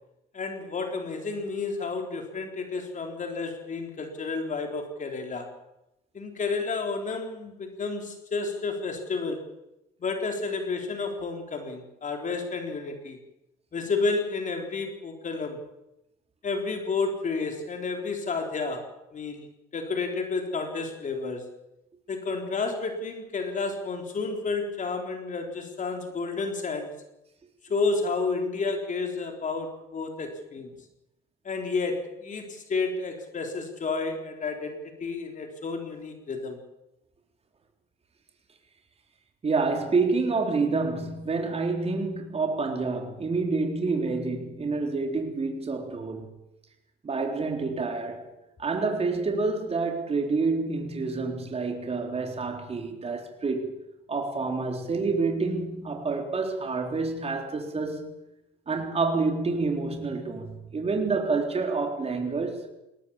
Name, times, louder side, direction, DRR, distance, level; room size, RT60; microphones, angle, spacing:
voice 1, 0.3-5.5 6.1-9.5 10.0-13.2 13.7-15.6 16.4-19.5 19.7-21.5 22.1-27.0 27.7-30.7 31.4-36.6, left 4 dB, 40° left, 3.8 m, -31 dB
voice 2, 39.4-46.3 47.0-48.3 48.6-53.8 54.1-58.1 58.7-62.6, right 4 dB, 30° right, 4.0 m, -28 dB
20.5 x 18.5 x 7.3 m
cardioid pair, 90°, 20 cm